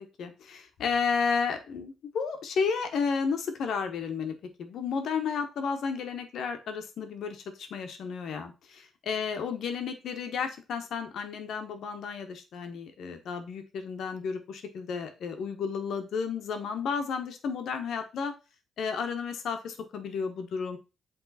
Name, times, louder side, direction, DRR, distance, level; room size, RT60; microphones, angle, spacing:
voice 1, 0.0-18.3 18.8-20.8, left 5 dB, 70° left, 7 dB, 1.3 m, -32 dB
8.3 x 3.7 x 4.2 m, 0.29 s
cardioid pair, 90°, 0 cm